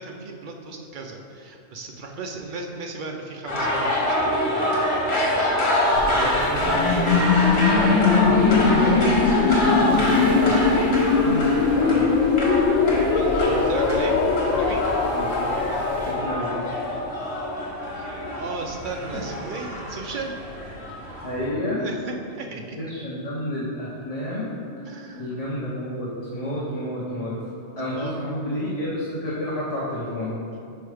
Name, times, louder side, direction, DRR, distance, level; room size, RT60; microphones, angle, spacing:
voice 1, 0.0-5.4 6.0-7.0 13.1-14.8 17.9-20.3 21.8-22.8 24.9-25.2 27.9-28.2, right 3 dB, 50° right, 2 dB, 0.6 m, -36 dB
sound 1, 3.5-21.4, left 1 dB, 55° left, 1.5 m, -26 dB
voice 2, 5.9-6.3 7.0-7.4 7.7-9.0 9.6-10.9 11.2-12.1 15.0-15.3 16.0-16.5 21.2-21.8 22.8-24.5 25.2-27.3 27.8-30.4, left 1 dB, 30° left, -8 dB, 0.9 m, -30 dB
sound 2, 5.9-16.1, right 1 dB, 75° right, 1.7 m, -36 dB
sound 3, 6.6-18.4, left 4 dB, 75° left, 0.9 m, -21 dB
5.6 x 4.6 x 4.9 m, 2.6 s
omnidirectional pair, 1.4 m